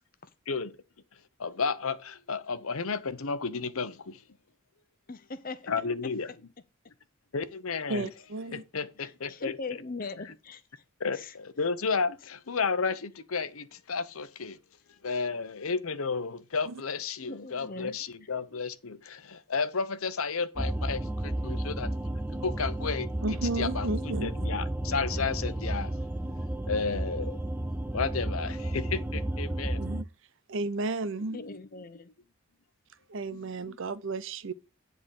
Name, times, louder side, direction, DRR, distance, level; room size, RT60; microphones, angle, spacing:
voice 1, 1.4-4.2 5.7-6.3 7.3-8.1 8.5-9.5 11.0-14.6 15.0-21.9 22.4-23.1 23.6-25.9 26.7-27.4 27.9-29.8 31.3-31.6 33.3-33.8, left 5 dB, 75° left, 0.9 m, -32 dB
voice 2, 5.1-5.6 9.0-9.1 9.4-10.6 11.1-11.3 17.2-18.0 31.3-32.1, left 3 dB, 40° left, 0.8 m, -39 dB
voice 3, 7.9-8.6 16.7-16.8 23.2-24.4 29.8-30.1 30.5-31.4 33.1-34.5, right 3 dB, 60° right, 0.7 m, -33 dB
sound 1, 20.6-30.0, right 1 dB, 10° right, 0.4 m, -32 dB
9.9 x 3.9 x 6.5 m
head